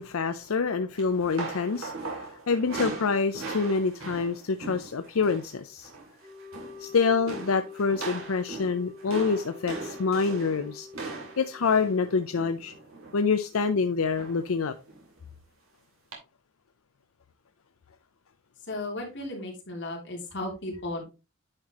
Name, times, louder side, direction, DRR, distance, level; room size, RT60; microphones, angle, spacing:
voice 1, 0.0-5.9 6.8-10.9 11.4-12.7 13.1-14.7, left 5 dB, 85° left, 0.6 m, -26 dB
sound 1, 1.0-5.5 5.8-6.1 6.4-6.9 7.3-13.3 14.1-14.5 14.9-15.0 16.1-16.2, right 3 dB, 80° right, 2.7 m, -39 dB
sound 2, 6.2-13.0, left 4 dB, 50° right, 3.3 m, -47 dB
voice 2, 18.7-21.0, left 2 dB, 55° left, 2.9 m, -35 dB
9.8 x 5.8 x 2.9 m
head